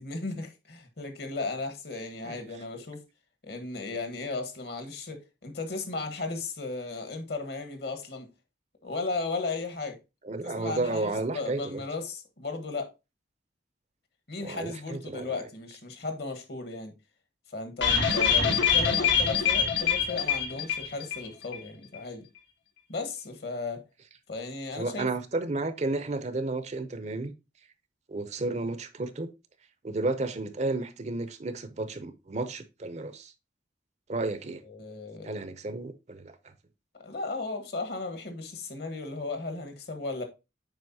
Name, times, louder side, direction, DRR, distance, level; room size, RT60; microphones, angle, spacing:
voice 1, 0.0-3.0 3.4-8.3 8.8-10.0 10.4-12.9 14.3-16.9 17.5-22.3 22.9-23.8 24.3-25.1 34.6-35.3 37.0-40.2, left 3 dB, 60° left, 1.3 m, -35 dB
voice 2, 10.2-11.8 14.4-15.5 18.4-18.6 24.7-27.3 28.1-29.3 29.8-33.3 34.1-34.6 35.2-36.4, right 2 dB, 40° right, 0.6 m, -32 dB
sound 1, 17.8-21.3 21.5-21.6 21.9-22.0, left 7 dB, 75° left, 1.4 m, -24 dB
7.7 x 5.1 x 2.7 m
head